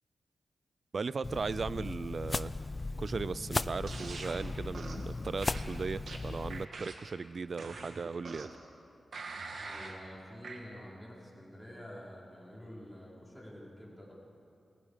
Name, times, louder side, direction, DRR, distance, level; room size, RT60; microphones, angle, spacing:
voice 1, 0.9-2.6 3.0-8.5, right 4 dB, 55° right, 17 dB, 0.5 m, -37 dB
sound 1, 1.2-6.7, left 3 dB, 30° left, 0.5 m, -37 dB
sound 2, 3.9-4.4 4.7-5.1 5.4-7.1 7.6-8.6 9.1-10.0 10.4-10.6, right 3 dB, 75° right, 2.4 m, -44 dB
voice 2, 9.6-14.1, equal, ahead, -5 dB, 5.2 m, -48 dB
29.5 x 20.0 x 5.2 m, 2.7 s
wide cardioid pair, 85°, 0 cm